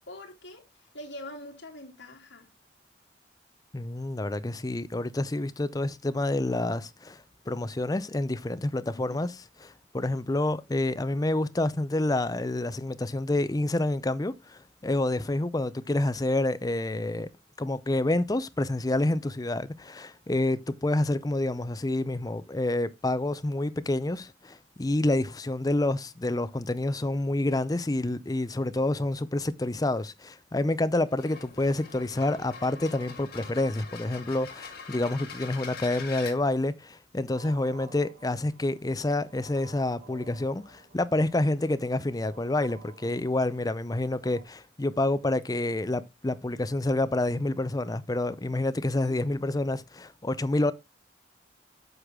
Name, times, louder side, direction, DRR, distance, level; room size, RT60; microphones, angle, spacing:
voice 1, 0.1-2.5 8.9-9.2 37.4-37.5 49.0-49.2, left 1 dB, 75° left, 2.8 m, -44 dB
voice 2, 3.7-9.3 9.6-17.3 17.6-50.7, left 2 dB, 20° left, 0.5 m, -28 dB
sound 1, 31.0-36.4, left 5 dB, 55° left, 1.8 m, -43 dB
sound 2, 37.3-44.4, right 4 dB, 70° right, 2.1 m, -53 dB
8.0 x 6.3 x 3.6 m
head